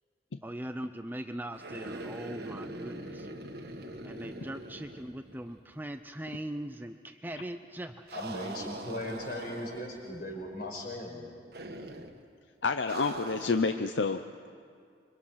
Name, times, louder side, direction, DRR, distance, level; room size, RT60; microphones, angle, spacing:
voice 1, 0.4-3.3 4.0-8.2, right 1 dB, 10° right, 8 dB, 0.5 m, -40 dB
sound 1, 1.5-5.7 6.0-6.1 8.1-10.1 11.5-12.2 12.9-13.7, right 2 dB, 55° right, 1.5 m, -42 dB
voice 2, 8.1-11.3, left 1 dB, 50° left, 0 dB, 5.5 m, -38 dB
voice 3, 12.6-14.2, left 4 dB, 75° left, 8 dB, 0.7 m, -28 dB
26.0 x 24.0 x 5.8 m, 2.2 s
head